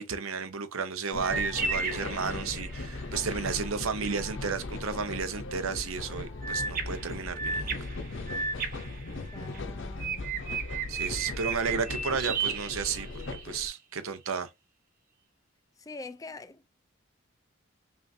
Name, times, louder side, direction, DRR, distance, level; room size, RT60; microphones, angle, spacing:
voice 1, 0.0-7.7 10.9-14.5, right 5 dB, 85° right, 0.7 m, -33 dB
sound 1, 1.1-13.7, left 2 dB, 65° left, 0.7 m, -38 dB
sound 2, 1.2-2.9 6.4-9.6 10.0-13.4, right 5 dB, 45° right, 0.8 m, -34 dB
sound 3, 1.3-10.6 11.0-11.1, left 2 dB, 10° right, 1.3 m, -55 dB
voice 2, 9.3-10.3 15.8-16.7, left 3 dB, 15° left, 0.3 m, -44 dB
5.5 x 2.5 x 2.7 m
head